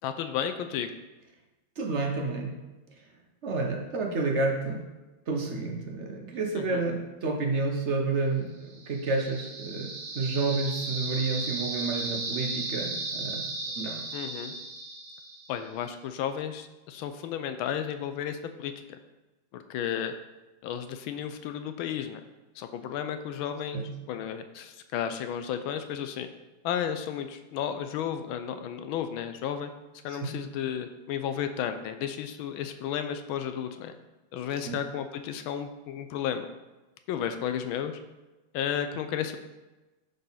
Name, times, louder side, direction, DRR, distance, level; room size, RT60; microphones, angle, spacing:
voice 1, 0.0-0.9 6.6-6.8 14.1-14.5 15.5-18.7 19.5-20.1 20.6-22.2 22.6-23.8 24.1-26.3 26.6-29.7 30.0-33.9 34.3-36.5 37.1-38.0 38.5-39.4, left 9 dB, 85° left, 8 dB, 1.4 m, -33 dB
voice 2, 1.8-2.6 3.4-4.8 5.3-13.5 13.7-14.0 23.7-23.9 30.1-30.4 34.6-34.8, right 3 dB, 55° right, 2 dB, 0.8 m, -30 dB
sound 1, 8.7-15.6, right 3 dB, 90° right, 1.9 m, -35 dB
10.5 x 4.2 x 4.0 m, 1.1 s
omnidirectional pair, 2.2 m